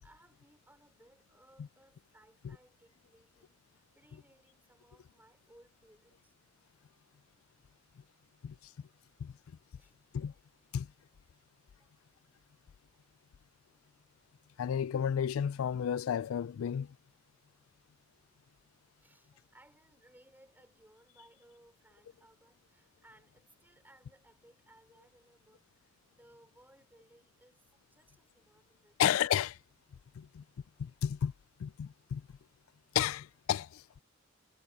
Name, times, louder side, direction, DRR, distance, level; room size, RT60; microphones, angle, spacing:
voice 1, 0.0-6.3 9.7-10.0 11.3-11.4 11.8-11.9 19.0-29.0, right 1 dB, 10° right, 5.6 m, -64 dB
voice 2, 14.6-16.9 29.0-29.6 30.2-30.4 30.8-31.3 31.6-32.2 32.9-33.8, left 9 dB, 90° left, 0.3 m, -32 dB
head